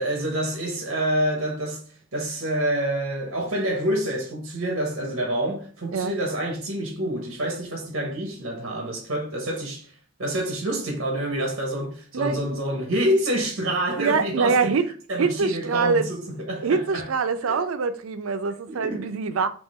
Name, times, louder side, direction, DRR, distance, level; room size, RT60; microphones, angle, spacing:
voice 1, 0.0-9.9 10.2-14.7 15.1-17.1 17.5-17.6 18.7-19.1, right 1 dB, 60° right, 0.9 m, -27 dB
voice 2, 14.0-14.9 15.2-16.1 16.6-19.5, right 5 dB, 80° right, 0.5 m, -24 dB
3.6 x 2.9 x 4.1 m
head